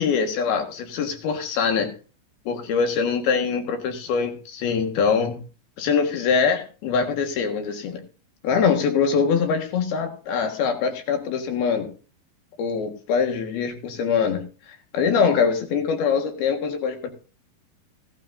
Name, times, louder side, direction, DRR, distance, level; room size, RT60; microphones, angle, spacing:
voice 1, 0.0-1.9 2.5-5.4 5.8-8.0 8.4-11.9 12.6-17.1, left 6 dB, 70° left, 5 dB, 3.5 m, -23 dB
17.0 x 12.0 x 2.7 m, 0.35 s
omnidirectional pair, 4.7 m